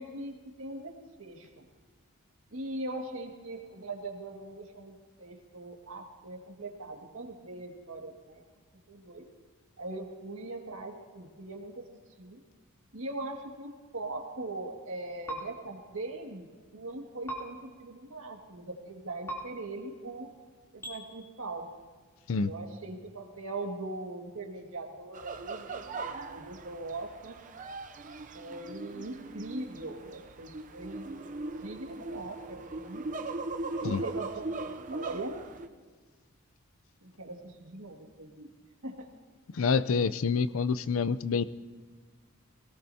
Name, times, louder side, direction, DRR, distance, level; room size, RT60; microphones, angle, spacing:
voice 1, 0.0-1.7 2.5-8.4 8.9-9.3 9.8-11.8 12.2-12.4 12.9-16.5 16.7-20.3 20.7-21.7 22.4-27.4 28.3-31.1 31.6-33.1 33.8-35.4 37.0-38.5 38.8-39.1, right 2 dB, 75° right, 2 dB, 2.0 m, -41 dB
sound 1, 15.3-15.4 17.3-17.4 19.3-19.4 20.8-21.0, right 1 dB, 10° left, 3.1 m, -36 dB
sound 2, 25.1-35.7, right 2 dB, 35° right, 0.6 m, -39 dB
voice 2, 39.5-41.4, left 5 dB, 70° left, 14 dB, 0.5 m, -27 dB
22.5 x 17.5 x 2.8 m, 1.5 s
head